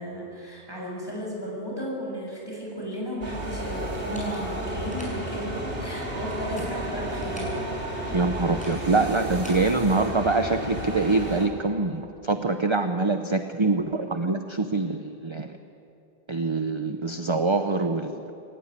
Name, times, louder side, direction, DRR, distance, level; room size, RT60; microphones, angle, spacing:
voice 1, 0.0-7.6, equal, 20° left, -2 dB, 6.9 m, -34 dB
sound 1, 3.2-11.5, right 1 dB, 65° right, 3.2 m, -32 dB
sound 2, 3.9-5.4 6.1-7.6 8.3-10.4, equal, 5° left, 7.1 m, -46 dB
voice 2, 8.1-15.6 16.3-18.3, right 3 dB, 30° right, 7 dB, 0.9 m, -25 dB
26.5 x 15.0 x 9.7 m, 2.6 s
omnidirectional pair, 1.1 m